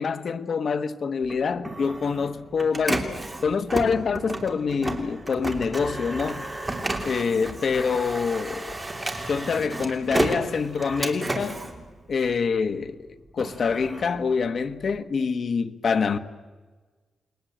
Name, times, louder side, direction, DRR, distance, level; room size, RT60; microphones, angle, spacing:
voice 1, 0.0-3.1 3.4-6.4 7.0-8.7 9.3-11.6 12.1-13.0 13.3-16.2, left 5 dB, 55° left, 1.3 m, -26 dB
Printer, 1.3-12.7 13.1-15.0, right 2 dB, 15° right, 2.9 m, -32 dB
29.5 x 21.0 x 8.0 m
wide cardioid pair, 120°, 0 cm